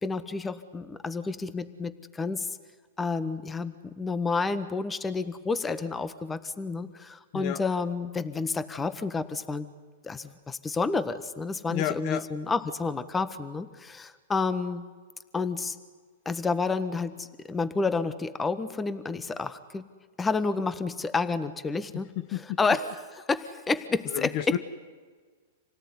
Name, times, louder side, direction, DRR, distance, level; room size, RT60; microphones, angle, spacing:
voice 1, 0.0-2.6 3.0-9.7 10.0-14.9 15.3-15.8 16.2-19.8 20.2-22.1 22.6-22.9 23.3-24.6, left 4 dB, 15° left, 13 dB, 1.5 m, -30 dB
voice 2, 11.7-12.3 22.2-22.6 24.1-24.6, left 12 dB, 45° left, 12 dB, 1.1 m, -31 dB
27.5 x 18.0 x 9.8 m, 1.5 s
hypercardioid pair, 125°, 0 cm